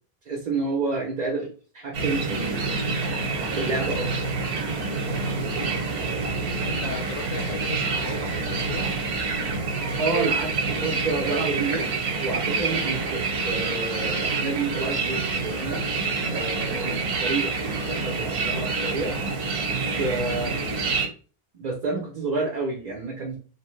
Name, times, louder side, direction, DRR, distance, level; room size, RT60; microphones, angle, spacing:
voice 1, 0.3-2.9 3.5-4.1 9.4-9.6 10.0-11.9 12.2-15.8 16.3-19.2 19.7-20.6 21.6-23.4, right 3 dB, 50° right, 0 dB, 0.6 m, -29 dB
sound 1, 1.9-21.1, right 4 dB, 80° right, 1.0 m, -27 dB
voice 2, 6.6-8.8 20.6-20.8, left 5 dB, 65° left, 5 dB, 0.7 m, -37 dB
2.9 x 2.0 x 3.0 m, 0.39 s
omnidirectional pair, 1.0 m